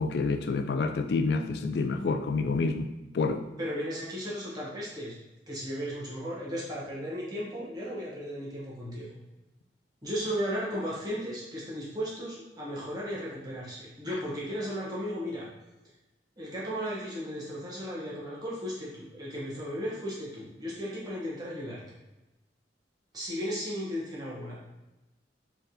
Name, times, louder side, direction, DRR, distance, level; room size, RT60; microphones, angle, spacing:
voice 1, 0.0-3.4, left 4 dB, 65° left, 8 dB, 0.3 m, -28 dB
voice 2, 3.6-5.1 5.5-9.2 10.0-15.5 16.4-21.8 23.1-24.6, equal, 20° right, -7 dB, 1.1 m, -35 dB
4.0 x 3.3 x 2.8 m, 1.0 s
head